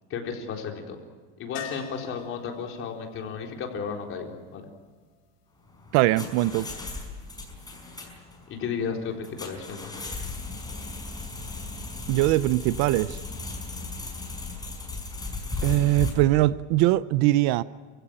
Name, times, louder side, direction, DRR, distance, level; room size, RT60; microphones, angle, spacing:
voice 1, 0.1-1.0 1.4-4.7 8.5-9.9 15.7-16.0, left 6 dB, 40° left, 2 dB, 4.1 m, -34 dB
sound 1, 1.5-5.4 8.1-8.2 8.4-8.5, left 9 dB, 70° left, 5.8 m, -44 dB
sound 2, 5.7-16.1, left 3 dB, 10° left, 5.3 m, -36 dB
voice 2, 5.9-6.7 12.1-13.2 15.6-17.6, right 17 dB, 55° right, 17 dB, 0.7 m, -21 dB
28.5 x 16.0 x 8.9 m, 1.4 s
supercardioid pair, 140°, 34 cm